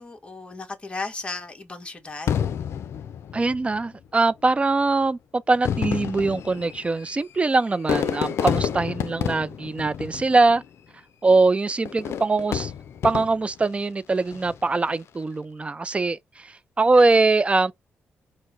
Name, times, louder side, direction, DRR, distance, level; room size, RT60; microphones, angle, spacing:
voice 1, 0.0-2.4, left 3 dB, 25° left, 1.3 m, -35 dB
Fireworks, 2.3-3.9 4.7-4.8 5.5-10.8 11.9-13.6 14.2-14.7, left 8 dB, 80° left, 0.4 m, -29 dB
voice 2, 3.3-10.6 11.2-12.7 13.0-17.7, right 3 dB, 25° right, 0.4 m, -22 dB
4.4 x 2.1 x 4.5 m
cardioid pair, 80°, 4 cm